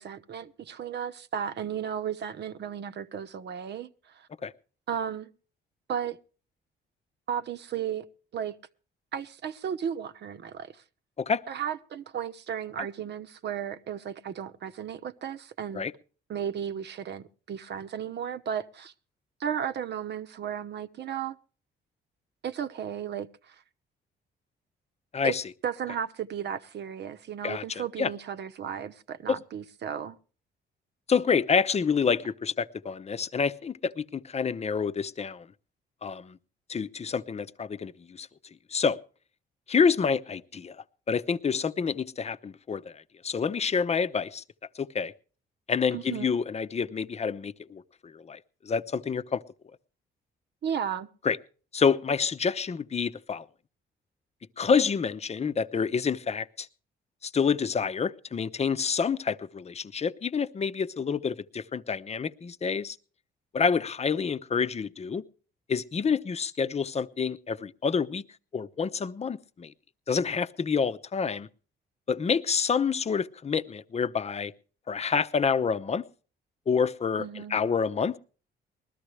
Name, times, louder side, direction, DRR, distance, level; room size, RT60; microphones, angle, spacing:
voice 1, 0.0-4.3 4.9-5.3 5.9-6.2 7.3-8.1 8.3-8.6 9.1-10.8 11.5-15.9 16.3-18.9 19.4-21.4 22.4-23.6 25.2-25.4 25.6-30.2 45.9-46.3 50.6-51.1 77.2-77.6, right 8 dB, 60° right, 1.0 m, -34 dB
voice 2, 25.1-25.4 27.4-27.6 28.0-28.1 29.3-29.4 31.1-35.5 36.0-36.4 36.7-38.3 38.7-39.0 39.7-40.8 41.1-42.9 43.2-44.4 44.7-45.1 45.7-49.4 51.2-51.4 51.7-53.4 54.6-56.7 57.2-63.0 63.5-65.2 65.7-68.2 68.5-69.7 70.1-71.5 72.1-74.5 74.9-76.0 76.7-78.2, left 6 dB, 35° left, 0.8 m, -28 dB
20.5 x 13.5 x 3.3 m
cardioid pair, 90°, 20 cm